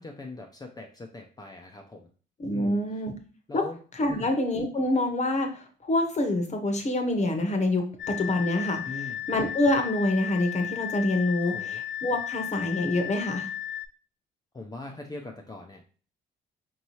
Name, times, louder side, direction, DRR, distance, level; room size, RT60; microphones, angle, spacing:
voice 1, 0.0-2.0 2.5-2.8 3.5-3.8 4.1-4.3 8.8-9.2 11.4-11.8 14.5-15.8, left 2 dB, 20° left, 2 dB, 0.5 m, -41 dB
voice 2, 2.4-3.1 3.5-3.7 3.9-8.8 9.3-13.5, left 1 dB, 35° left, 5 dB, 0.9 m, -26 dB
sound 1, 8.0-13.9, left 11 dB, 75° left, 0.5 m, -35 dB
4.5 x 2.8 x 3.0 m, 0.39 s
cardioid pair, 90°, 20 cm